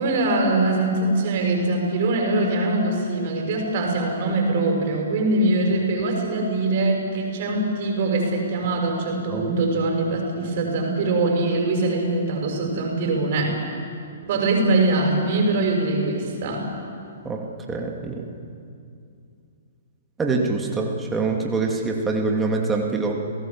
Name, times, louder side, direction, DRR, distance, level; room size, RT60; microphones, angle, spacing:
voice 1, 0.0-13.6 14.2-16.7, right 2 dB, 45° right, 2 dB, 6.1 m, -22 dB
voice 2, 17.2-18.3 20.2-23.1, right 3 dB, 10° right, 1 dB, 2.5 m, -25 dB
29.5 x 18.0 x 7.5 m, 2.5 s
figure-of-eight pair, 115°, 0 cm